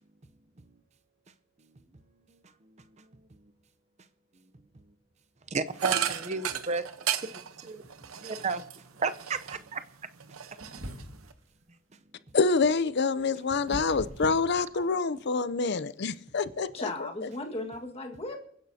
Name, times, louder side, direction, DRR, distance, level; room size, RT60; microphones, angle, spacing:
voice 1, 5.5-6.8 7.2-7.3 7.6-7.8 8.1-8.6 9.0-9.8, right 4 dB, 35° right, 0.7 m, -32 dB
sound 1, 5.8-9.8 10.2-11.3, right 9 dB, 90° right, 0.9 m, -34 dB
sound 2, 10.6-11.4 12.9-15.2, equal, 65° right, 2.1 m, -41 dB
voice 2, 12.3-16.9 17.2-17.3, left 4 dB, 55° left, 0.5 m, -27 dB
voice 3, 16.6-18.4, left 2 dB, 30° left, 1.7 m, -36 dB
29.0 x 10.5 x 2.8 m
head